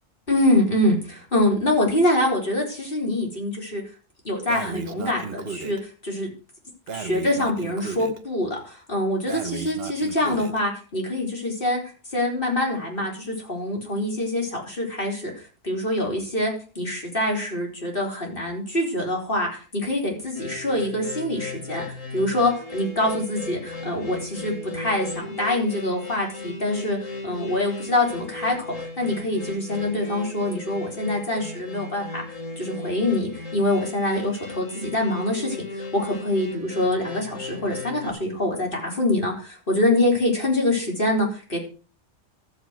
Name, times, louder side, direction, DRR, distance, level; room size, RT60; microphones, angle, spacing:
voice 1, 0.3-3.8 4.2-6.3 6.9-11.8 12.1-27.0 27.2-41.6, left 1 dB, 45° left, 0 dB, 4.0 m, -25 dB
Breathing, 4.5-5.8 6.9-8.2 9.3-10.6, right 6 dB, 55° right, 1.1 m, -35 dB
sound 1, 20.3-38.1, left 3 dB, 85° left, 3.0 m, -36 dB
13.0 x 7.4 x 6.2 m, 0.38 s
omnidirectional pair, 1.3 m